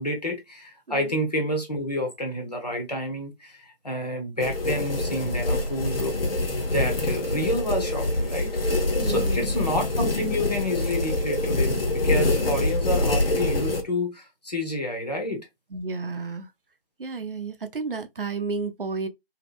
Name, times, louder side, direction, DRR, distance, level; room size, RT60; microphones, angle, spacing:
voice 1, 0.0-6.2 6.7-15.5, left 1 dB, 45° left, 0.8 m, -29 dB
sound 1, 4.4-13.8, left 2 dB, 75° left, 0.8 m, -25 dB
voice 2, 9.0-9.5 15.7-16.5 17.0-19.1, right 4 dB, 65° right, 0.5 m, -31 dB
2.7 x 2.1 x 2.3 m
figure-of-eight pair, 165°, 29 cm